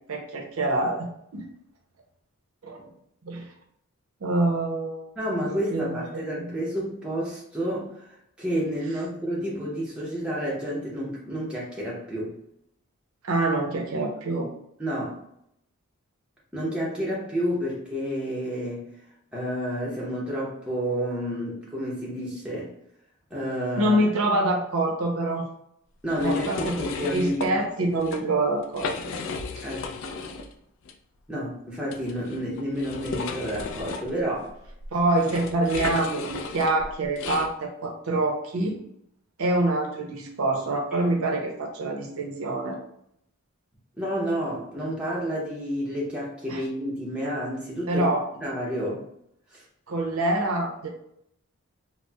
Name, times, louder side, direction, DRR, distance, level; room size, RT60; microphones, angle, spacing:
voice 1, 0.1-1.4 2.6-2.9 3.2-3.5 4.2-5.1 5.7-6.5 13.2-14.5 23.7-25.5 26.2-28.9 29.6-29.7 34.9-38.8 39.4-42.8 46.5-46.6 47.9-48.2 49.9-50.9, right 2 dB, 75° right, 1 dB, 0.6 m, -26 dB
voice 2, 5.2-8.1 8.4-12.3 14.8-15.2 16.5-18.9 19.3-22.7 23.3-24.0 26.0-27.6 29.6-29.9 31.3-34.5 44.0-48.1 48.4-49.0 49.5-49.6, equal, 5° right, -6 dB, 0.6 m, -30 dB
sound 1, 26.1-27.5 27.9-28.2 28.6-30.5 30.8-30.9 31.9-37.5, left 4 dB, 60° left, 0.3 m, -35 dB
4.1 x 2.0 x 2.2 m, 0.74 s
head